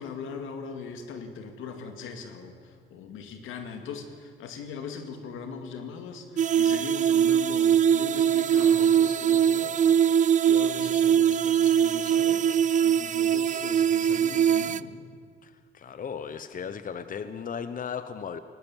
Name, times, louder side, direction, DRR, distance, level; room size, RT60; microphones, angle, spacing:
voice 1, 0.0-15.0, left 5 dB, 90° left, 6 dB, 2.2 m, -40 dB
sound 1, 6.4-14.8, right 9 dB, 40° right, 0.5 m, -22 dB
voice 2, 15.7-18.4, left 7 dB, 45° left, 11 dB, 0.9 m, -35 dB
19.5 x 18.5 x 7.2 m, 2.1 s
cardioid pair, 90°, 20 cm